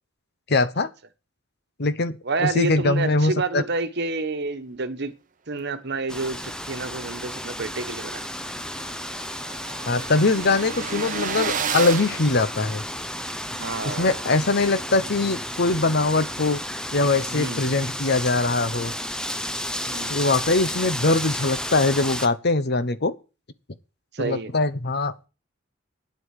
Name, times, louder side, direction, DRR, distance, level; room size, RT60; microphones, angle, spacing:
voice 1, 0.5-0.9 1.8-3.6 9.9-12.8 13.8-16.6 16.9-18.9 20.1-23.1 24.2-25.3, left 3 dB, 55° left, 1.0 m, -22 dB
voice 2, 2.2-5.1 5.5-8.2 13.5-14.1 17.3-17.6 19.9-20.2 24.1-24.5, right 3 dB, 55° right, 1.3 m, -29 dB
Wind, 6.1-22.3, left 1 dB, 5° left, 0.8 m, -32 dB
sound 1, 7.6-7.7 8.1-8.2 8.3-13.2, right 6 dB, 40° right, 0.8 m, -32 dB
9.3 x 8.0 x 8.3 m
head